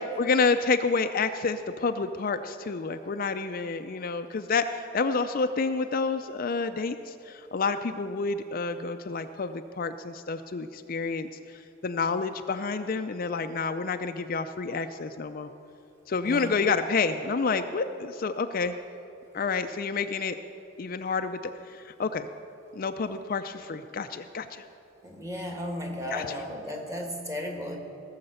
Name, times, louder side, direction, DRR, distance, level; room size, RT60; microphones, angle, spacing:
voice 1, 0.2-15.5 16.1-18.8 19.3-20.4 20.8-22.3 22.7-24.6 26.1-26.3, left 4 dB, 45° left, 8 dB, 0.4 m, -29 dB
voice 2, 25.0-27.8, left 1 dB, 15° right, 2 dB, 1.6 m, -34 dB
18.0 x 6.6 x 7.9 m, 2.8 s
head